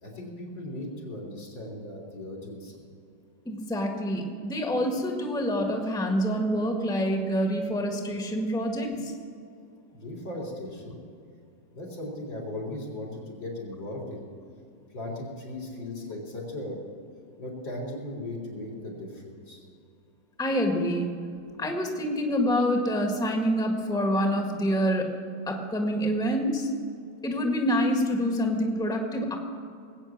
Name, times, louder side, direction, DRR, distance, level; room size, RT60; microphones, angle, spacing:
voice 1, 0.0-2.7 9.9-11.0 11.7-14.2 14.9-16.8 17.4-19.6, left 1 dB, 80° left, -3 dB, 4.3 m, -37 dB
voice 2, 3.4-9.1 20.4-21.1 21.6-25.1 25.5-26.7 27.2-29.4, equal, ahead, 2 dB, 1.5 m, -26 dB
19.5 x 8.8 x 7.4 m, 2.5 s
omnidirectional pair, 2.0 m